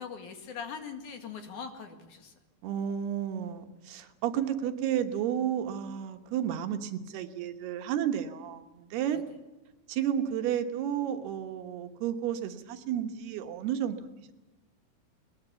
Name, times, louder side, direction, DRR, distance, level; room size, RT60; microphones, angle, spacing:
voice 1, 0.0-2.4 9.1-9.2, left 6 dB, 55° left, 5 dB, 3.2 m, -41 dB
voice 2, 2.6-9.2 9.9-14.1, right 9 dB, 85° right, 7 dB, 3.3 m, -32 dB
22.0 x 20.5 x 7.0 m, 1.1 s
omnidirectional pair, 4.5 m